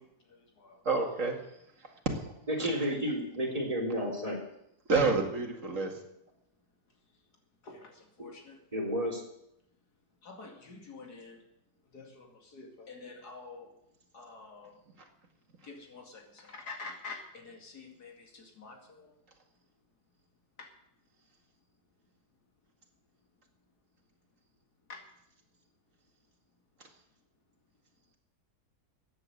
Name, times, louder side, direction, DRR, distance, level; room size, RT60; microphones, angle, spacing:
voice 1, 0.8-1.4 1.8-1.9 2.2-2.3 2.6-2.9 4.9-6.0, right 4 dB, 50° right, 2 dB, 2.5 m, -29 dB
voice 2, 2.5-4.4 8.7-9.2, equal, 20° right, 0 dB, 3.5 m, -31 dB
voice 3, 7.6-8.6 10.2-11.4 11.9-13.7 14.1-14.7 15.6-19.1 20.6-20.7 24.9-25.0, left 4 dB, 80° left, 2 dB, 2.9 m, -47 dB
14.0 x 9.6 x 7.7 m, 0.79 s
omnidirectional pair, 1.7 m